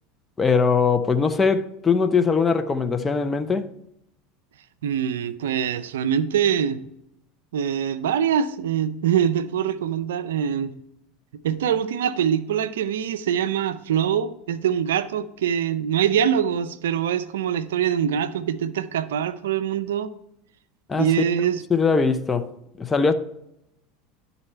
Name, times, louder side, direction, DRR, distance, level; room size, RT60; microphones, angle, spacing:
voice 1, 0.4-3.7 20.9-21.1 21.7-22.5 22.8-23.1, left 5 dB, 20° left, 0.6 m, -21 dB
voice 2, 4.8-6.8 7.5-10.7 11.4-20.1 21.0-21.6, right 8 dB, 80° right, 0.5 m, -24 dB
11.0 x 4.0 x 4.4 m
hypercardioid pair, 90°, 0 cm